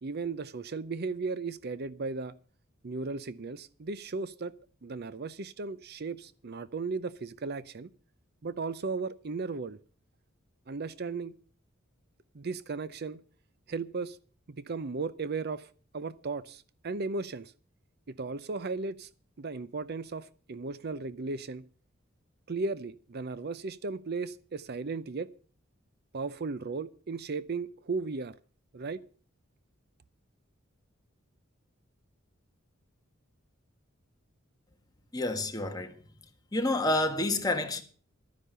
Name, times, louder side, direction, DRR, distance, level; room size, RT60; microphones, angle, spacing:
voice 1, 0.0-2.3 2.8-4.5 4.8-7.9 8.4-9.8 10.7-11.3 12.3-13.2 13.7-14.2 14.5-17.5 18.1-19.1 19.4-21.6 22.5-25.3 26.1-28.3 28.7-29.0, right 4 dB, 50° right, 0.6 m, -36 dB
voice 2, 35.1-36.0 36.5-37.8, left 2 dB, 20° left, 1.6 m, -29 dB
12.5 x 10.0 x 6.7 m
head